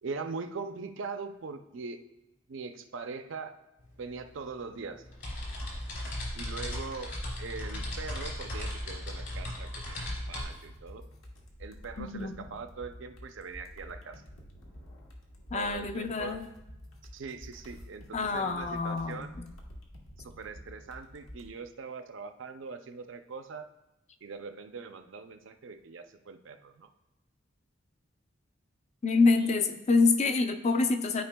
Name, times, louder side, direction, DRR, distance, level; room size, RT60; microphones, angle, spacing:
voice 1, 0.0-2.0 2.5-3.6 4.0-5.0 6.3-11.1 11.6-14.2 15.5-16.4 17.1-19.4 20.2-23.7 24.2-26.9 29.4-29.6, right 4 dB, 65° right, 8 dB, 0.5 m, -41 dB
sound 1, 3.8-3.9 4.2-10.4, left 1 dB, 55° left, 2.7 m, -37 dB
sound 2, 10.0-21.5, equal, 85° left, 1.3 m, -49 dB
voice 2, 12.0-12.4 15.5-16.5 18.1-19.5 29.0-31.2, left 3 dB, 35° left, 8 dB, 0.5 m, -26 dB
12.5 x 4.9 x 2.2 m, 0.93 s
head